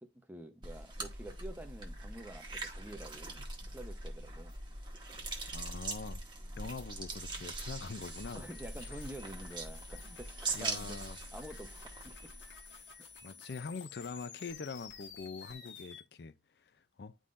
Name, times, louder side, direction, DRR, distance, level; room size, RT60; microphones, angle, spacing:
voice 1, 0.0-3.4 3.7-4.5 8.3-11.0 11.3-12.3 12.9-13.1, right 1 dB, 10° right, 0.8 m, -48 dB
sound 1, 0.6-12.8, right 3 dB, 25° right, 1.2 m, -42 dB
voice 2, 5.5-6.2 6.6-8.5 10.5-11.2 12.7-12.8 13.2-16.7 17.0-17.2, left 4 dB, 65° left, 0.5 m, -44 dB
sound 2, 8.0-16.0, left 6 dB, 90° left, 1.4 m, -52 dB
9.8 x 3.8 x 2.5 m
head